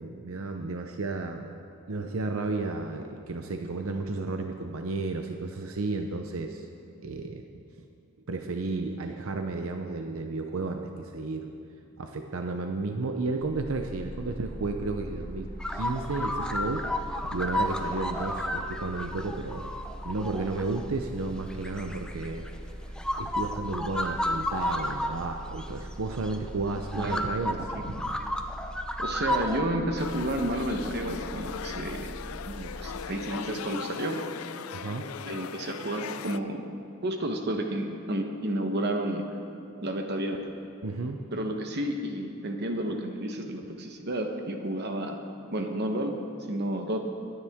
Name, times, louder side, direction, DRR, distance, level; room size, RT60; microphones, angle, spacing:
voice 1, 0.0-1.5 1.9-6.7 7.0-7.5 8.3-11.5 12.0-15.5 15.7-16.9 17.3-19.7 20.0-22.5 22.9-28.2 34.7-35.1 40.8-41.2, right 3 dB, 70° right, 4 dB, 0.7 m, -33 dB
sound 1, 13.4-33.0, equal, 40° left, 2.1 m, -41 dB
sound 2, 15.6-20.8 21.5-22.6 23.0-25.1 25.6-25.7 26.3-26.4 26.9-29.6, left 1 dB, 5° left, 0.5 m, -32 dB
voice 2, 26.9-27.3 27.7-27.8 29.0-32.1 32.5-34.2 35.2-36.6 37.0-39.3 39.8-40.5 41.3-45.2 45.5-46.2 46.5-47.0, right 1 dB, 50° right, 4 dB, 1.0 m, -31 dB
sound 3, 30.0-36.4, left 7 dB, 80° left, 0.4 m, -39 dB
22.5 x 9.8 x 3.6 m, 2.7 s
head